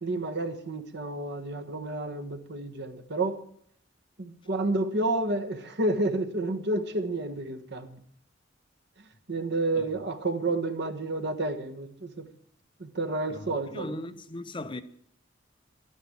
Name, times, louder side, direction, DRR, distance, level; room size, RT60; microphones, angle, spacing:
voice 1, 0.0-3.4 4.2-8.0 9.3-12.3 12.8-13.9, right 2 dB, 60° right, 1.4 m, -30 dB
voice 2, 13.3-14.8, left 1 dB, 25° left, 0.7 m, -38 dB
12.0 x 9.5 x 8.6 m
head